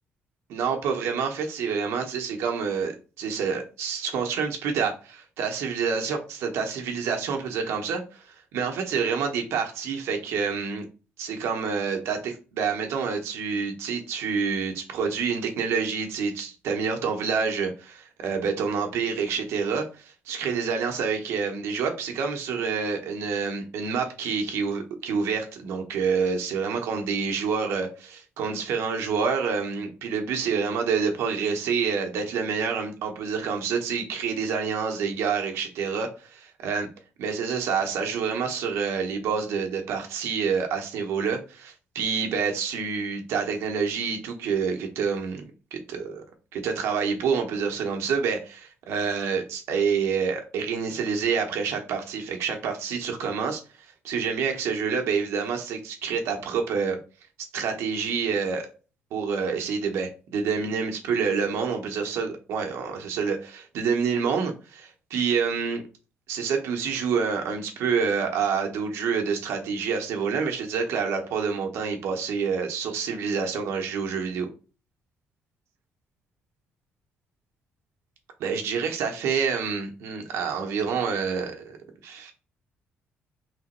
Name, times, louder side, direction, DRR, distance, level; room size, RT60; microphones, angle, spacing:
voice 1, 0.5-10.8 11.2-36.9 37.2-45.4 45.7-46.2 46.5-53.6 54.0-57.0 57.5-58.7 59.1-65.8 66.3-74.5 78.4-81.8 82.0-82.3, right 6 dB, 85° right, 0.8 m, -27 dB
3.3 x 2.9 x 4.1 m
cardioid pair, 155°, 4 cm